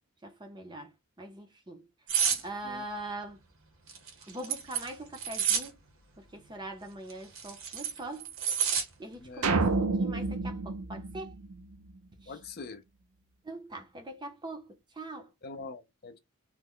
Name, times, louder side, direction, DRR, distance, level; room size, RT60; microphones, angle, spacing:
voice 1, 0.2-1.8 2.4-3.4 4.3-5.8 6.2-8.3 9.0-11.3 12.2-12.3 13.4-15.3, right 1 dB, 20° right, 0.5 m, -42 dB
sound 1, 2.1-2.4 3.9-5.7 7.1-8.9 9.3-9.5, right 7 dB, 70° right, 0.9 m, -29 dB
sound 2, 9.4-11.9, right 3 dB, 85° right, 0.5 m, -29 dB
voice 2, 12.3-12.8 15.4-16.2, left 4 dB, 45° left, 0.4 m, -43 dB
3.1 x 2.1 x 3.6 m
head